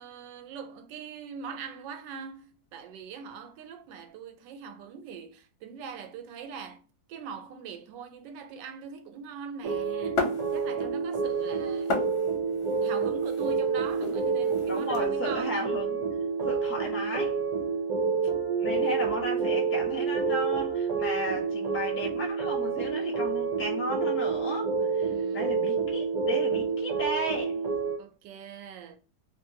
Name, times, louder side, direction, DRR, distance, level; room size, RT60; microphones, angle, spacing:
voice 1, 0.0-12.0 12.8-15.7 25.0-25.5 28.0-29.0, right 6 dB, 80° right, 1.2 m, -42 dB
sound 1, 9.6-28.0, right 5 dB, 65° right, 1.0 m, -28 dB
Sonic Snap Zakaria, 10.2-11.0 11.3-15.0, left 3 dB, 55° left, 0.7 m, -35 dB
voice 2, 14.7-16.0 16.4-17.4 18.6-27.6, equal, 20° left, 0.3 m, -34 dB
2.9 x 2.6 x 2.7 m
omnidirectional pair, 2.0 m